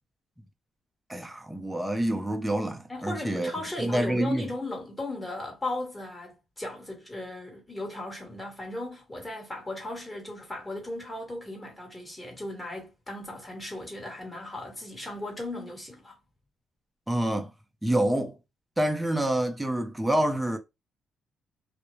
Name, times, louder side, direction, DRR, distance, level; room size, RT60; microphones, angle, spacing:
voice 1, 1.1-3.5 3.8-4.5 17.1-17.5 17.8-18.4 18.8-20.6, right 1 dB, 5° right, 0.6 m, -27 dB
voice 2, 2.9-16.2, left 1 dB, 15° left, 1.3 m, -37 dB
2.3 x 2.0 x 3.0 m
cardioid pair, 90°, 0 cm